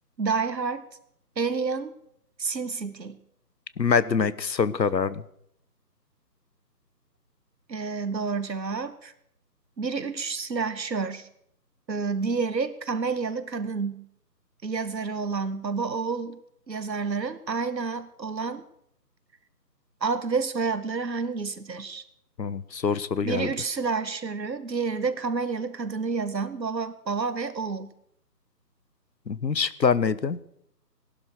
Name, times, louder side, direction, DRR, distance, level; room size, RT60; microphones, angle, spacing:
voice 1, 0.2-0.8 1.4-1.9 2.4-3.2 7.7-9.1 9.8-11.3 11.9-14.0 14.6-16.4 16.7-18.6 20.0-22.0 23.2-27.9, right 4 dB, 80° right, 12 dB, 1.8 m, -29 dB
voice 2, 3.8-5.2 22.4-23.5 29.3-30.4, left 6 dB, 85° left, 17 dB, 1.2 m, -25 dB
18.5 x 12.0 x 6.4 m, 0.73 s
figure-of-eight pair, 170°, 50 cm